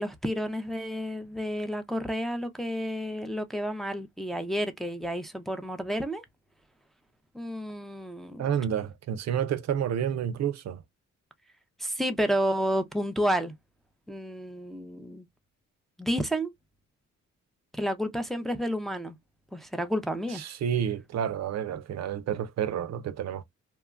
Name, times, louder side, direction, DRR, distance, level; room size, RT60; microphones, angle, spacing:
voice 1, 0.0-6.2 7.3-8.5 11.8-13.5 14.1-15.3 16.0-16.5 17.7-19.2 19.5-20.4, equal, ahead, 0.5 m, -30 dB
voice 2, 8.4-10.8 20.3-23.4, right 9 dB, 60° right, 0.5 m, -30 dB
2.9 x 2.2 x 2.3 m
cardioid pair, 80°, 30 cm